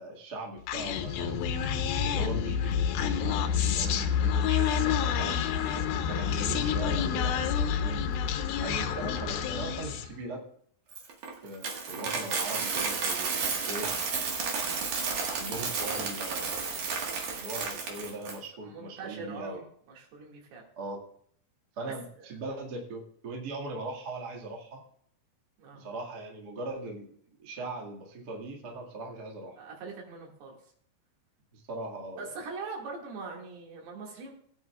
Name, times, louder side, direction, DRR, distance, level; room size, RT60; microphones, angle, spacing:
voice 1, 0.0-1.6 2.0-8.1 8.6-10.5 11.4-13.9 15.1-16.7 17.3-19.7 20.7-21.0 21.7-24.8 25.7-29.6 31.5-32.3, right 2 dB, 40° right, -1 dB, 1.6 m, -40 dB
Human voice, 0.7-10.2, left 7 dB, 80° left, 2.4 m, -28 dB
Coin (dropping), 10.9-18.4, right 5 dB, 55° right, 2.6 m, -32 dB
voice 2, 18.6-19.6 19.9-20.6 22.2-22.3 25.6-25.9 29.6-30.6 32.2-34.3, right 4 dB, 75° right, -1 dB, 4.0 m, -42 dB
19.0 x 9.0 x 2.4 m, 0.62 s
omnidirectional pair, 4.7 m